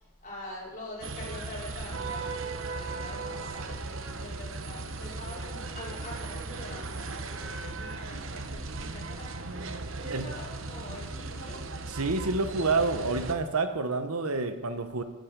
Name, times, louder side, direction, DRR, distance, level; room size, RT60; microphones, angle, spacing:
voice 1, 0.2-9.5 10.0-11.6, left 1 dB, 35° left, -5 dB, 5.0 m, -44 dB
sound 1, 1.0-13.4, right 3 dB, 60° right, 1.0 m, -37 dB
voice 2, 11.9-15.0, right 3 dB, 85° right, 9 dB, 1.2 m, -28 dB
15.5 x 11.0 x 5.3 m, 1.2 s
head